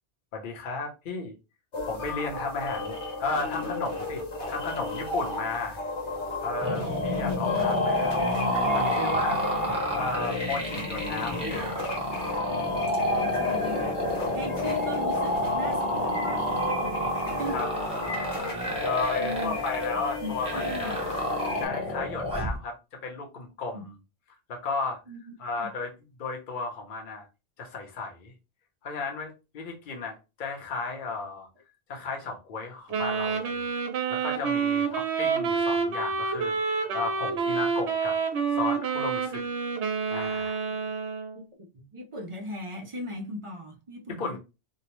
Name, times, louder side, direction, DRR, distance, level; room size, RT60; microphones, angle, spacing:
voice 1, 0.3-1.3 1.9-5.8 6.4-8.2 8.7-9.4 9.9-11.7 13.1-13.4 17.5-17.7 18.0-18.4 18.8-21.2 21.6-24.0 24.5-25.0 25.4-25.9 26.2-27.3 27.6-28.3 28.8-31.5 31.9-33.7 34.1-38.2 38.5-39.4 40.1-40.6 44.2-44.4, left 4 dB, 55° left, 0.8 m, -34 dB
sound 1, 1.7-21.7, left 2 dB, 90° left, 1.2 m, -34 dB
sound 2, 6.6-22.6, left 1 dB, 5° right, 0.8 m, -29 dB
voice 2, 13.1-13.9 14.3-17.6 19.2-19.6 20.2-20.9 23.7-23.9 25.1-25.7 41.3-44.4, equal, 55° right, 0.3 m, -38 dB
Wind instrument woodwind instrument, 32.9-41.4, right 5 dB, 80° right, 0.9 m, -28 dB
2.7 x 2.0 x 2.9 m
omnidirectional pair, 1.1 m